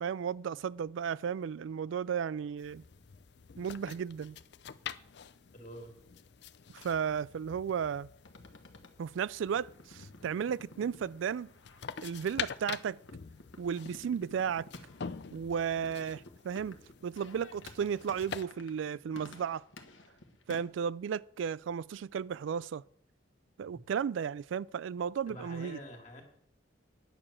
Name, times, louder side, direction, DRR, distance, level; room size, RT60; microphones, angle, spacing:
voice 1, 0.0-2.8 3.6-4.4 6.7-8.1 9.0-11.5 12.0-13.0 13.6-14.7 15.3-16.8 17.0-19.6 20.5-22.8 23.6-25.8, right 7 dB, 75° right, 0.3 m, -34 dB
sound 1, 2.6-18.5, left 7 dB, 60° left, 0.5 m, -46 dB
voice 2, 5.5-5.9 23.7-23.8 25.3-26.2, equal, 40° left, 2.2 m, -47 dB
sound 2, 8.2-20.6, left 2 dB, 80° left, 1.3 m, -54 dB
9.9 x 6.8 x 7.2 m
head